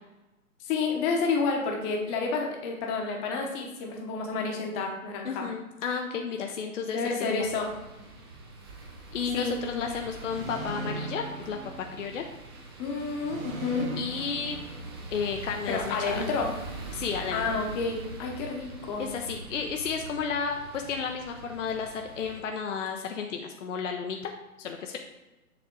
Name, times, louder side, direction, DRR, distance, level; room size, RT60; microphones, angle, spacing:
voice 1, 0.7-5.5 6.9-7.7 9.3-9.5 12.8-14.0 15.7-16.5 17.3-19.1, left 4 dB, 20° left, 1 dB, 1.0 m, -30 dB
voice 2, 5.2-7.5 9.1-12.3 14.0-14.6 15.1-16.3 16.9-17.6 19.0-24.3 24.6-25.0, left 6 dB, 60° left, 3 dB, 0.7 m, -32 dB
sound 1, 7.3-22.4, right 2 dB, 20° right, 0.4 m, -43 dB
sound 2, 10.3-12.4 13.2-15.4, right 3 dB, 70° right, 1.4 m, -39 dB
7.1 x 3.4 x 4.5 m, 1.1 s
figure-of-eight pair, 130°, 43 cm